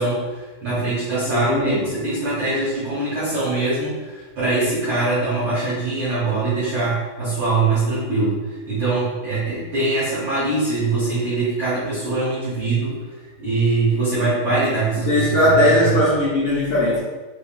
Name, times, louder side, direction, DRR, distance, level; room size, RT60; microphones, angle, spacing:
voice 1, 0.0-8.4 8.7-13.0 13.4-15.9, right 3 dB, 80° right, -9 dB, 1.2 m, -22 dB
voice 2, 1.2-1.8 15.1-17.0, left 1 dB, 70° left, -8 dB, 1.9 m, -18 dB
5.6 x 3.6 x 2.4 m, 1.2 s
omnidirectional pair, 4.4 m